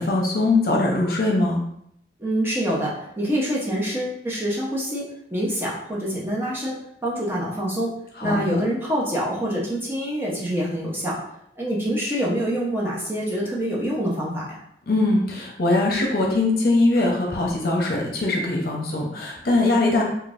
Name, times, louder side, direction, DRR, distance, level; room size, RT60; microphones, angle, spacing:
voice 1, 0.0-1.6 8.2-8.7 14.9-20.0, left 2 dB, 55° left, -1 dB, 0.8 m, -21 dB
voice 2, 2.2-11.2 11.6-14.4, equal, 15° right, -5 dB, 0.8 m, -26 dB
5.1 x 2.4 x 2.5 m, 0.73 s
head